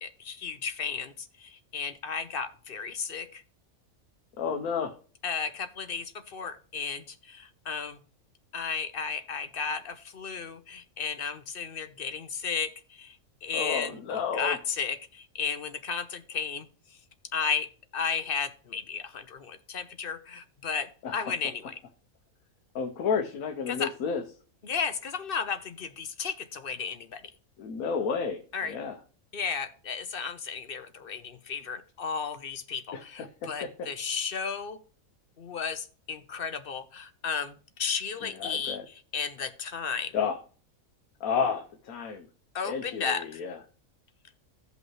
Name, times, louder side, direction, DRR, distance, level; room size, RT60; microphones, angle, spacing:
voice 1, 0.0-3.4 5.2-8.0 8.5-16.7 17.3-17.7 17.9-21.8 23.7-23.9 24.6-27.2 28.5-28.8 29.3-34.8 35.4-40.2 42.5-43.4, left 6 dB, 50° left, 9 dB, 0.8 m, -34 dB
voice 2, 4.4-4.9 13.5-14.6 21.0-21.3 22.7-24.2 27.6-29.0 32.9-33.9 38.2-38.8 40.1-40.4 41.2-42.3 42.6-43.6, left 6 dB, 80° left, 4 dB, 1.3 m, -31 dB
16.5 x 5.5 x 3.1 m, 0.40 s
omnidirectional pair, 1.5 m